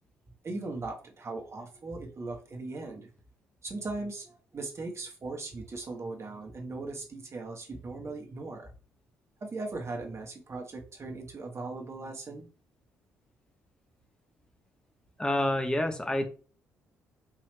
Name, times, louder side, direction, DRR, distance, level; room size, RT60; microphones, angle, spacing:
voice 1, 0.4-3.1 3.6-8.7 9.4-12.5, right 3 dB, 35° right, 2 dB, 1.2 m, -38 dB
voice 2, 15.2-16.3, left 1 dB, 10° left, 6 dB, 0.9 m, -28 dB
4.7 x 3.1 x 3.2 m, 0.37 s
figure-of-eight pair, 45°, 8 cm